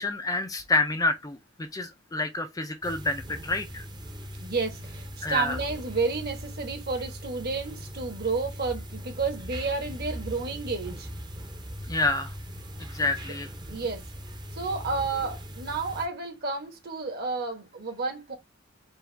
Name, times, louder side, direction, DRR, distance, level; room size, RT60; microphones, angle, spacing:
voice 1, 0.0-3.8 5.2-5.6 11.9-12.3 12.8-13.5, left 2 dB, 15° left, 0.4 m, -28 dB
sound 1, 2.8-16.1, equal, 20° right, 0.8 m, -40 dB
voice 2, 4.4-11.1 13.7-14.0 14.5-18.3, right 4 dB, 45° right, 1.2 m, -31 dB
4.7 x 2.4 x 3.3 m
head